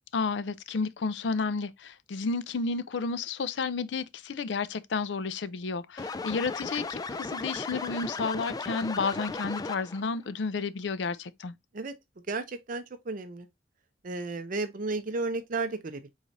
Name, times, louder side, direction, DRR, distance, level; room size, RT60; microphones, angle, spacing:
voice 1, 0.1-11.6, left 4 dB, 85° left, 0.5 m, -31 dB
sound 1, 6.0-10.1, left 3 dB, 20° left, 0.3 m, -36 dB
voice 2, 12.3-13.5 14.0-16.1, right 3 dB, 50° right, 0.6 m, -33 dB
4.9 x 4.0 x 2.5 m
head